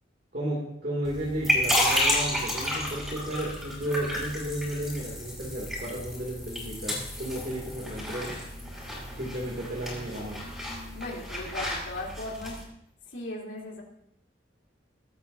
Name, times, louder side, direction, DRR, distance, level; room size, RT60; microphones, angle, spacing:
voice 1, 0.3-8.4 9.2-10.4, right 1 dB, 50° right, -5 dB, 2.6 m, -33 dB
sound 1, 1.0-12.6, equal, ahead, 4.7 m, -31 dB
voice 2, 10.9-12.6 13.1-13.8, left 2 dB, 70° left, -3 dB, 3.4 m, -37 dB
22.5 x 9.1 x 2.7 m, 0.77 s
head